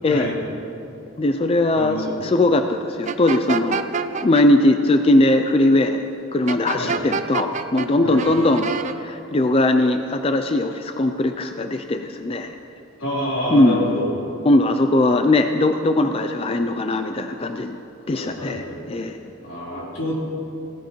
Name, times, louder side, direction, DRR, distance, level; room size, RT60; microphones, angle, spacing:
voice 1, 1.2-3.8 4.2-6.0 6.3-8.7 9.0-12.5 13.5-13.9 14.5-17.8 18.1-19.2, left 2 dB, 30° left, 6 dB, 0.4 m, -19 dB
voice 2, 1.7-2.2 6.8-7.0 8.0-8.3 13.0-14.1 18.1-18.8 19.4-20.1, left 1 dB, 85° left, -6 dB, 3.8 m, -27 dB
sound 1, 3.1-4.4 6.5-7.9 8.2-8.9, right 5 dB, 35° right, 0.4 m, -26 dB
17.0 x 15.0 x 3.1 m, 2.7 s
head